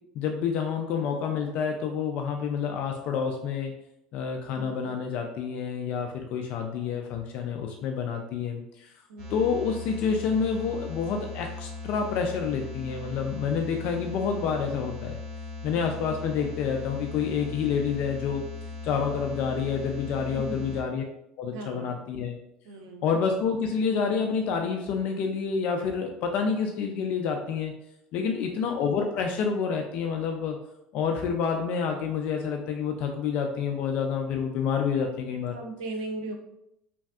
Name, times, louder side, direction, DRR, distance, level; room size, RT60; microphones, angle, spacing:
voice 1, 0.2-3.7 4.1-8.9 9.3-15.2 15.6-18.4 18.8-21.0 21.4-22.4 23.0-27.7 28.1-30.6 30.9-35.5, left 6 dB, 60° left, 3 dB, 0.3 m, -28 dB
voice 2, 9.1-9.5 15.7-16.1 20.3-20.8 21.5-22.1 22.6-23.0 28.2-28.5 35.5-36.3, right 2 dB, 80° right, 4 dB, 0.5 m, -39 dB
sound 1, 9.2-20.8, left 3 dB, 55° right, 1.4 m, -39 dB
3.2 x 2.6 x 2.3 m, 0.80 s
hypercardioid pair, 80°, 3 cm